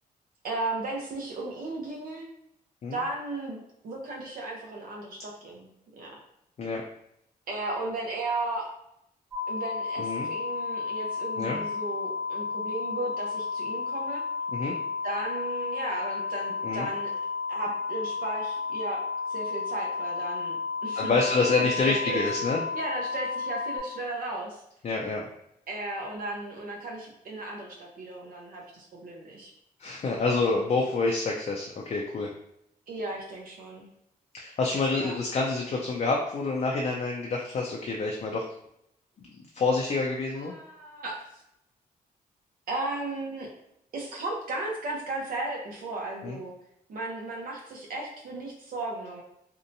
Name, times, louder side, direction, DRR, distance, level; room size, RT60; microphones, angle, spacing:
voice 1, 0.4-2.3 2.9-5.7 6.0-6.2 7.5-8.7 9.5-14.2 15.0-17.1 17.5-21.2 21.6-22.3 22.7-24.6 25.7-29.5 32.9-33.9 34.9-35.2 40.3-41.4 42.7-43.5 43.9-46.5 46.9-49.2, right 2 dB, 65° right, -1 dB, 0.7 m, -35 dB
sound 1, 9.3-23.8, left 4 dB, 15° right, 0.9 m, -32 dB
voice 2, 20.9-22.6 24.8-25.3 29.8-32.3 34.3-38.4 39.5-40.5 46.2-46.4, left 3 dB, 45° left, -1 dB, 0.4 m, -27 dB
2.7 x 2.1 x 2.6 m, 0.78 s
cardioid pair, 75°, 16 cm